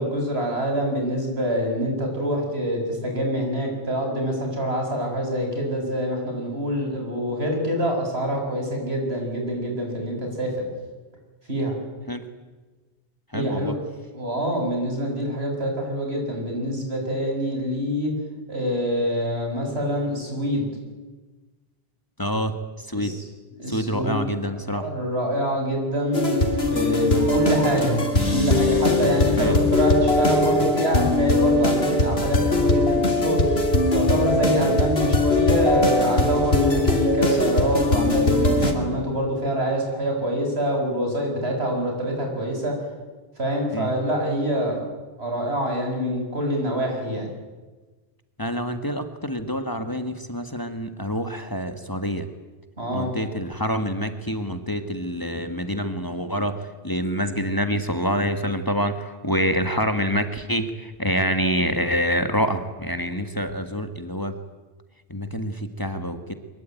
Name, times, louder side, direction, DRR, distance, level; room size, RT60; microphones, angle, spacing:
voice 1, 0.0-10.6 11.5-11.7 13.3-13.7 14.2-18.1 18.5-20.7 22.9-23.2 23.6-24.3 24.7-26.4 26.7-28.0 28.3-33.6 33.9-42.8 43.4-44.8 45.2-47.3 52.8-53.1, equal, 85° right, 2 dB, 7.1 m, -25 dB
voice 2, 13.3-13.8 22.2-23.2 23.7-24.9 29.4-29.6 43.7-43.9 48.4-52.3 52.9-64.3 65.1-66.3, equal, 20° left, 8 dB, 1.7 m, -26 dB
sound 1, 26.1-38.7, left 2 dB, 80° left, 3.2 m, -21 dB
23.5 x 22.0 x 9.3 m, 1.2 s
omnidirectional pair, 1.0 m